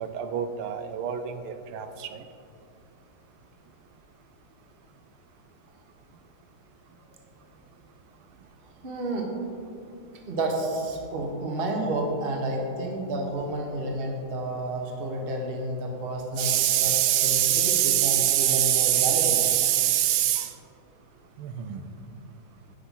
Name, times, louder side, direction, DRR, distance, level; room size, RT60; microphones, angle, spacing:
voice 1, 0.0-2.2 16.4-20.5 21.4-21.8, right 12 dB, 85° right, 8 dB, 1.5 m, -24 dB
voice 2, 8.8-9.3 10.3-16.9 17.2-19.4, right 1 dB, 35° right, 1 dB, 1.0 m, -30 dB
9.6 x 5.7 x 5.6 m, 2.6 s
omnidirectional pair, 2.3 m